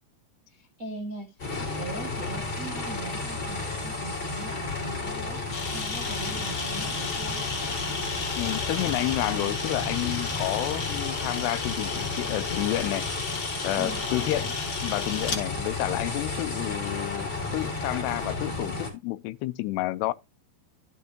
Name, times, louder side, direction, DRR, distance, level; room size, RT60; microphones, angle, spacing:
voice 1, 0.5-5.4 5.7-7.4 13.8-14.2, right 3 dB, 50° right, 0.9 m, -40 dB
sound 1, 1.4-18.9, left 3 dB, 25° left, 3.2 m, -32 dB
Camera, 5.5-15.4, left 4 dB, 50° left, 1.2 m, -34 dB
voice 2, 8.4-13.1 13.6-14.5 14.8-20.1, left 17 dB, 90° left, 2.7 m, -30 dB
12.0 x 6.5 x 2.9 m
omnidirectional pair, 4.7 m